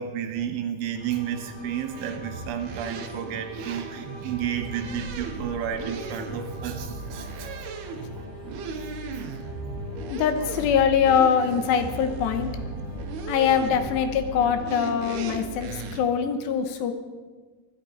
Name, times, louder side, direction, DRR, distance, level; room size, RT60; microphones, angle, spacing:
voice 1, 0.0-7.5 8.8-8.9, right 9 dB, 85° right, 6 dB, 3.7 m, -32 dB
sound 1, 0.9-15.9, left 1 dB, 10° right, 5.0 m, -40 dB
sound 2, 2.0-16.0, right 4 dB, 70° right, 2.8 m, -37 dB
voice 2, 10.1-12.5 13.3-16.9, left 7 dB, 75° left, 8 dB, 2.9 m, -23 dB
24.0 x 10.5 x 4.5 m, 1.4 s
omnidirectional pair, 5.4 m